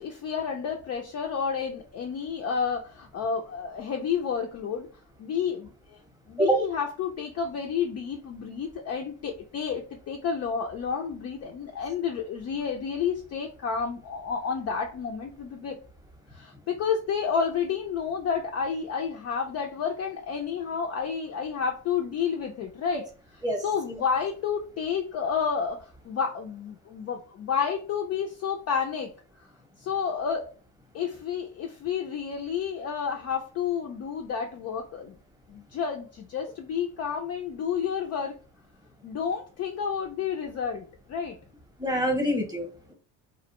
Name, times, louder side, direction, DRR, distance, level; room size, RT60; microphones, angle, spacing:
voice 1, 0.0-4.9 5.2-6.0 6.3-15.8 16.3-23.0 23.3-29.1 29.8-30.5 30.9-35.1 35.5-38.4 39.0-41.4, left 6 dB, 40° left, 2 dB, 0.4 m, -30 dB
voice 2, 41.8-42.9, right 1 dB, 10° right, 2 dB, 0.8 m, -26 dB
2.5 x 2.1 x 2.9 m, 0.37 s
supercardioid pair, 85°, 43 cm